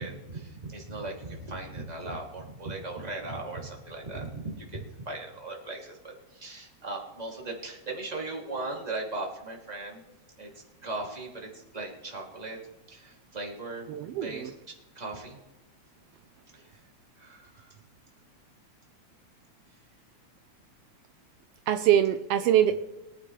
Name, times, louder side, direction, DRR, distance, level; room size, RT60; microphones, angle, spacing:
voice 1, 0.0-10.0 10.4-10.5 10.8-12.6 12.9-13.9 14.2-15.4 16.5-16.7 17.2-17.7, right 2 dB, 15° right, -1 dB, 2.4 m, -38 dB
voice 2, 13.9-14.5 21.7-22.8, right 10 dB, 85° right, 9 dB, 1.3 m, -24 dB
23.0 x 9.9 x 3.2 m, 1.1 s
omnidirectional pair, 3.3 m